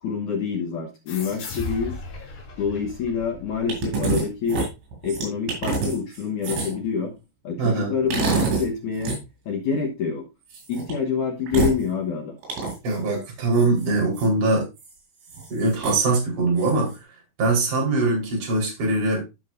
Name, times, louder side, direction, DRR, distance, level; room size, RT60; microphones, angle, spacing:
voice 1, 0.0-1.9 2.6-4.6 5.0-7.1 7.4-9.2 9.5-10.2 10.7-12.4, left 6 dB, 70° left, 1 dB, 1.8 m, -27 dB
sound 1, 1.1-4.3, left 3 dB, 55° left, 4.3 m, -37 dB
sound 2, 3.7-4.2 4.5-6.9 8.1-8.7 9.0-9.2 10.5-10.9 11.5-11.8 12.4-13.0 13.5-14.3 14.8-14.9 15.2-16.0 16.6-17.0, right 4 dB, 85° right, 7.2 m, -26 dB
voice 2, 7.6-7.9 12.8-14.7 15.5-17.1 17.4-19.2, right 2 dB, 45° right, -2 dB, 5.5 m, -22 dB
15.5 x 6.1 x 2.6 m, 0.25 s
omnidirectional pair, 5.3 m